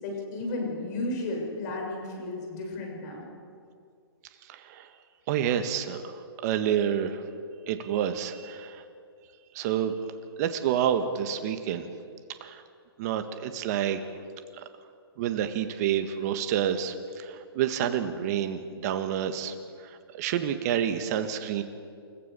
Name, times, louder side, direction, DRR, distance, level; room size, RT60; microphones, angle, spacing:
voice 1, 0.0-3.3, left 2 dB, 45° left, 0 dB, 7.0 m, -33 dB
voice 2, 4.4-4.9 5.3-7.3 7.7-8.8 9.5-9.9 10.4-11.9 12.4-12.6 13.0-14.0 14.5-14.6 15.2-21.6, right 9 dB, 40° right, 8 dB, 1.7 m, -29 dB
29.0 x 15.0 x 7.1 m, 2.3 s
hypercardioid pair, 140°, 13 cm